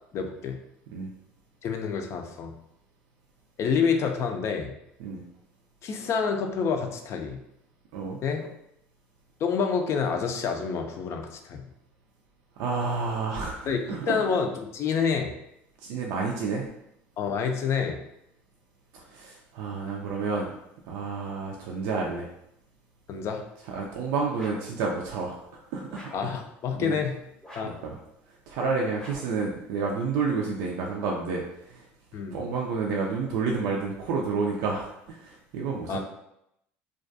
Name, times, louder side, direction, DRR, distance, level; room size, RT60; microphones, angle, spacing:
voice 1, 0.1-0.6 1.6-2.5 3.6-4.7 5.8-7.4 8.2-8.5 9.4-11.7 13.7-13.8 14.1-15.3 17.2-18.0 23.1-23.4 26.1-27.2 27.5-27.7 32.1-32.4 35.9-36.0, left 6 dB, 50° left, 4 dB, 0.4 m, -28 dB
voice 2, 12.6-14.2 15.8-16.6 18.9-20.5 20.9-22.3 23.7-26.3 26.8-27.0 27.6-28.0 28.5-31.9 32.3-36.0, right 4 dB, 70° right, -1 dB, 0.4 m, -30 dB
sound 1, 24.3-24.8 25.9-26.4 27.4-27.9 28.9-29.4, left 1 dB, 10° left, 0.7 m, -45 dB
2.4 x 2.2 x 2.6 m, 0.80 s
supercardioid pair, 85°, 6 cm